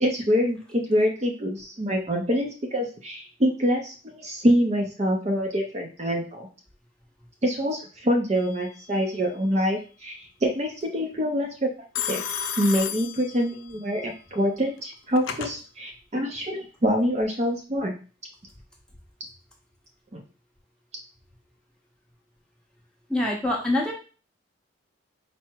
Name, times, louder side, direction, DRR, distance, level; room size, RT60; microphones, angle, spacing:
voice 1, 0.0-6.5 7.4-12.2 12.6-17.9 20.1-20.2, equal, 35° right, 1 dB, 0.5 m, -25 dB
Telephone, 8.4-8.9 12.0-13.8 14.8-15.6, left 8 dB, 90° left, 0.5 m, -33 dB
voice 2, 23.1-23.9, left 1 dB, 5° left, -3 dB, 0.8 m, -24 dB
4.6 x 2.0 x 4.4 m, 0.36 s
head